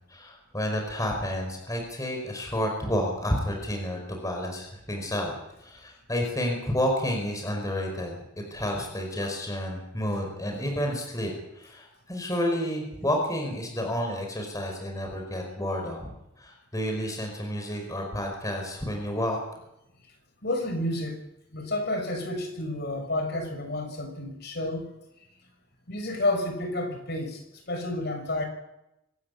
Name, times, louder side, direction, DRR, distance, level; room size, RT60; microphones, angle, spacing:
voice 1, 0.1-5.3 5.6-8.2 8.5-16.1 16.4-19.4, equal, 15° left, 2 dB, 5.0 m, -30 dB
voice 2, 20.4-21.2 21.5-24.9 25.9-28.4, left 1 dB, 55° left, 4 dB, 6.0 m, -30 dB
25.0 x 13.0 x 9.8 m, 0.86 s
head